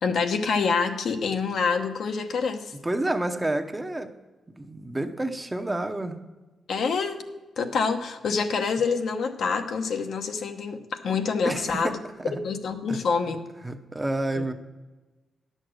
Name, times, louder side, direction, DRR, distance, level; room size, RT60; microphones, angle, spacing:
voice 1, 0.0-2.7 6.7-7.2 7.6-12.0 12.4-13.4 14.3-14.5, left 5 dB, 70° left, 5 dB, 0.9 m, -26 dB
voice 2, 2.8-4.1 4.5-6.2 11.4-12.3 12.9-13.0 13.6-14.5, right 1 dB, 15° right, 7 dB, 0.8 m, -29 dB
10.0 x 6.5 x 6.3 m, 1.2 s
cardioid pair, 75°, 0 cm